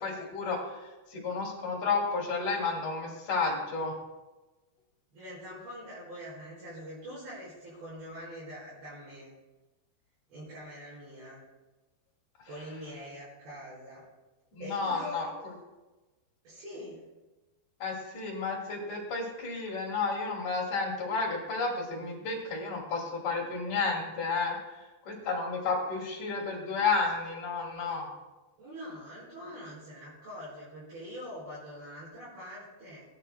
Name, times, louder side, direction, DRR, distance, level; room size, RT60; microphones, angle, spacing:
voice 1, 0.0-0.8 1.1-4.0 14.5-15.3 17.8-24.6 25.1-28.1, left 4 dB, 50° left, 0 dB, 3.8 m, -31 dB
voice 2, 5.1-9.3 10.3-11.4 12.5-14.0 14.6-15.3 16.4-17.0 22.0-22.1 28.6-33.1, equal, 60° right, -11 dB, 6.9 m, -44 dB
21.5 x 11.0 x 2.3 m, 1.1 s
omnidirectional pair, 5.0 m